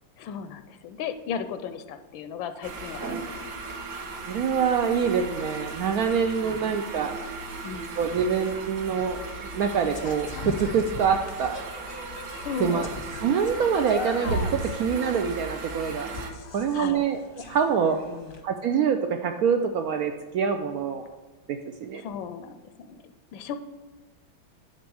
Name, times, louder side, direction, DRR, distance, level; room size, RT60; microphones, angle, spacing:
voice 1, 0.2-3.3 6.4-6.7 7.6-8.0 12.3-12.9 16.7-17.0 17.4-17.5 18.1-18.4 21.9-23.6, left 7 dB, 80° left, 10 dB, 1.3 m, -36 dB
sound 1, 2.6-16.3, right 3 dB, 55° right, 1.0 m, -36 dB
voice 2, 4.3-7.2 8.0-9.2 9.5-11.6 12.6-12.9 13.2-16.1 16.5-17.2 17.5-18.0 18.4-21.0 21.5-22.0, right 7 dB, 80° right, 6 dB, 0.8 m, -25 dB
sound 2, 8.3-18.4, left 4 dB, 40° left, 0.7 m, -40 dB
10.5 x 4.0 x 6.2 m, 1.3 s
omnidirectional pair, 2.1 m